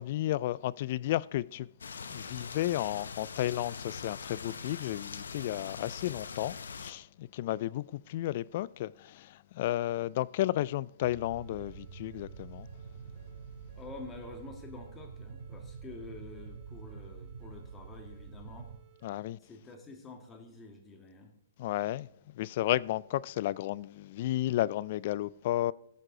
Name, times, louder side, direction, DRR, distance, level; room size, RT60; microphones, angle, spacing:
voice 1, 0.0-1.7 2.1-12.7 19.0-19.4 21.6-22.1 22.3-25.7, left 14 dB, 50° left, 0.3 m, -33 dB
sound 1, 1.8-6.9, left 5 dB, 80° left, 0.8 m, -42 dB
sound 2, 11.0-18.8, right 6 dB, 60° right, 1.0 m, -47 dB
sound 3, 11.1-19.1, right 6 dB, 20° right, 3.4 m, -62 dB
voice 2, 13.7-18.7 19.4-21.3, left 3 dB, 15° left, 1.8 m, -48 dB
16.0 x 6.6 x 3.8 m
hypercardioid pair, 140°, 0 cm